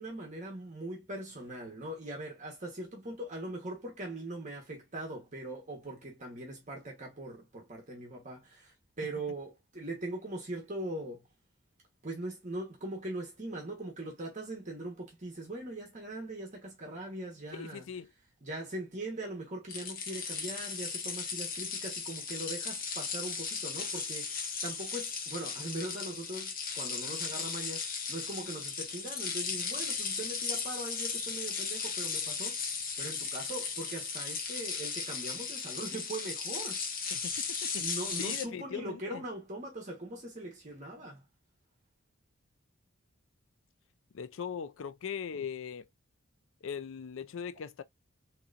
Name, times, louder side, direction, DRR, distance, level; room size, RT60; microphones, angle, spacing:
voice 1, 0.0-11.3 12.0-17.9 18.4-32.7 33.0-36.8 37.8-41.2, right 1 dB, 35° right, 1.1 m, -41 dB
voice 2, 17.6-18.1 37.1-37.8 38.2-39.2 44.1-45.9 46.6-47.8, left 7 dB, 65° left, 0.4 m, -40 dB
sound 1, 19.7-38.4, left 5 dB, 45° left, 0.9 m, -36 dB
3.8 x 3.0 x 2.4 m
head